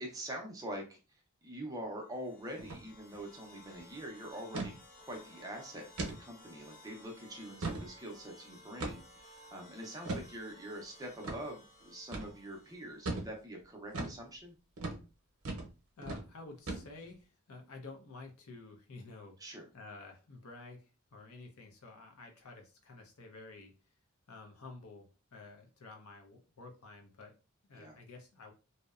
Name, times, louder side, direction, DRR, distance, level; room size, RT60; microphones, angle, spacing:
voice 1, 0.0-4.7 5.1-14.6 19.4-19.7 27.7-28.0, right 1 dB, 15° right, 2 dB, 0.4 m, -45 dB
sound 1, 2.0-13.3, left 1 dB, 45° left, 0.8 m, -58 dB
sound 2, 2.6-2.8 3.1-3.2 3.6-3.8 4.5-4.7 5.2-5.4 6.0-6.2 6.7-6.8 7.3-7.9 8.8-9.2 10.1-10.3 11.2-11.4 12.1-12.3 13.1-13.3 13.9-14.2 14.8-15.0 15.5-15.7 16.0-16.2 16.7-17.1, right 2 dB, 80° right, 0.7 m, -38 dB
voice 2, 16.0-19.4 19.7-23.7 24.3-27.3 27.7-28.5, left 3 dB, 80° left, 3 dB, 0.6 m, -51 dB
2.7 x 2.1 x 2.3 m, 0.32 s
head